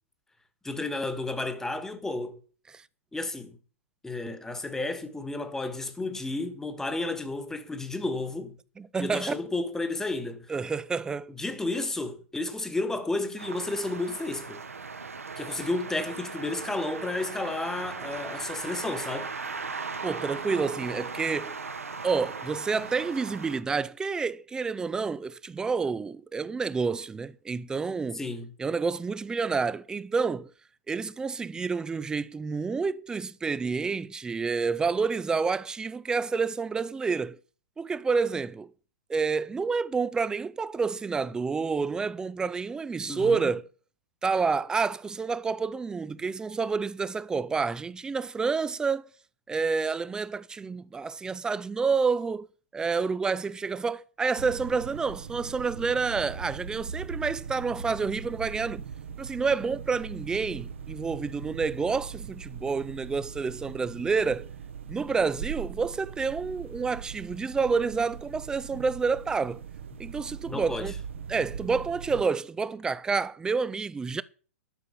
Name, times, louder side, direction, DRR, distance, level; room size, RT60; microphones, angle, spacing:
voice 1, 0.6-2.4 3.1-3.6 4.0-8.6 9.0-10.5 11.3-14.6 15.4-19.3 28.1-28.5 43.1-43.5 70.5-70.9, left 2 dB, 5° left, 1.5 m, -32 dB
voice 2, 8.8-9.3 10.5-11.3 20.0-21.6 22.0-28.2 28.6-30.5 30.9-37.4 37.8-38.7 39.1-43.7 44.2-49.1 49.5-52.5 52.7-58.8 59.2-64.5 64.9-69.6 70.0-70.9 71.3-74.2, right 5 dB, 10° right, 0.5 m, -29 dB
sound 1, 13.4-23.6, right 4 dB, 75° right, 1.6 m, -38 dB
sound 2, 54.4-72.2, right 7 dB, 55° right, 1.1 m, -40 dB
12.5 x 6.7 x 7.0 m
figure-of-eight pair, 110°, 8 cm